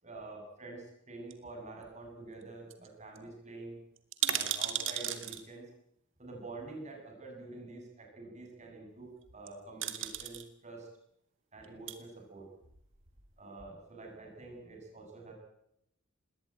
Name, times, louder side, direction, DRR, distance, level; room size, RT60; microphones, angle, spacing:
voice 1, 0.0-3.8 4.3-5.7 6.2-10.9 11.5-12.5 13.4-15.3, right 2 dB, 35° right, 1 dB, 7.8 m, -47 dB
sound 1, 1.3-2.1 2.4-2.5 2.7-2.9 3.1-3.2 4.0-5.4 6.6-6.7 9.2-9.5 9.8-10.4 11.6-12.0 12.6-13.3 13.6-13.7, right 10 dB, 65° right, 2.1 m, -35 dB
20.5 x 18.0 x 9.0 m, 0.79 s
head